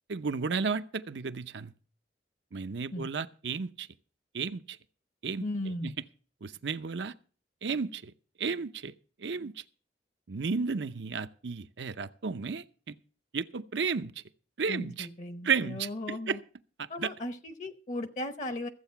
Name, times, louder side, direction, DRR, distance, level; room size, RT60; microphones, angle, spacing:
voice 1, 0.1-1.7 2.5-3.9 4.3-4.8 5.2-5.9 6.4-7.1 7.6-8.1 8.4-8.9 9.2-9.6 10.3-12.9 13.3-14.1 14.6-15.1 15.4-16.4 17.0-17.1, right 5 dB, 75° right, 0.7 m, -33 dB
voice 2, 5.4-6.0 14.6-16.4 16.9-18.7, left 1 dB, 40° left, 0.9 m, -36 dB
14.5 x 8.1 x 5.8 m
head